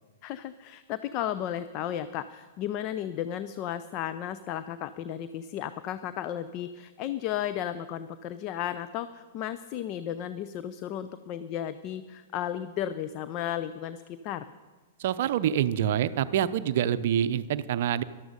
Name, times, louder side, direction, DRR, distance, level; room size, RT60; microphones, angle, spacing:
voice 1, 0.2-14.4, left 11 dB, 40° left, 13 dB, 0.5 m, -34 dB
voice 2, 15.0-18.0, right 10 dB, 55° right, 14 dB, 0.6 m, -26 dB
14.0 x 12.0 x 5.4 m, 1.3 s
figure-of-eight pair, 105°, 0 cm